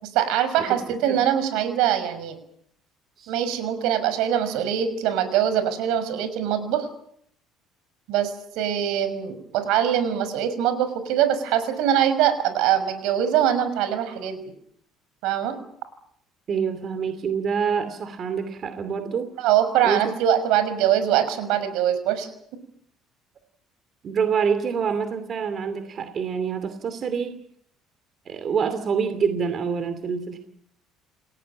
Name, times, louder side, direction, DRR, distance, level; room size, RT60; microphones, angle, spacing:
voice 1, 0.0-2.4 3.3-6.9 8.1-14.4 15.2-15.6 19.4-22.3, right 10 dB, 80° right, 11 dB, 6.1 m, -23 dB
voice 2, 16.5-19.3 19.8-20.2 24.0-27.4 28.3-30.4, right 6 dB, 35° right, 10 dB, 2.6 m, -26 dB
29.0 x 17.5 x 8.7 m, 0.67 s
cardioid pair, 155°, 0 cm